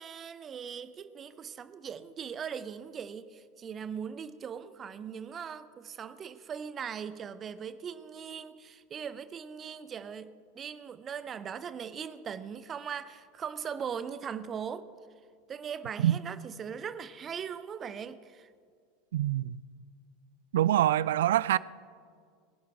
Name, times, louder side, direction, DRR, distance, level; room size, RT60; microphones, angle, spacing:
voice 1, 0.0-14.9 15.5-18.5, right 7 dB, 30° right, 0.8 m, -40 dB
voice 2, 19.1-19.6 20.5-21.6, right 12 dB, 65° right, 0.3 m, -25 dB
23.0 x 11.0 x 3.6 m
figure-of-eight pair, 80°, 0 cm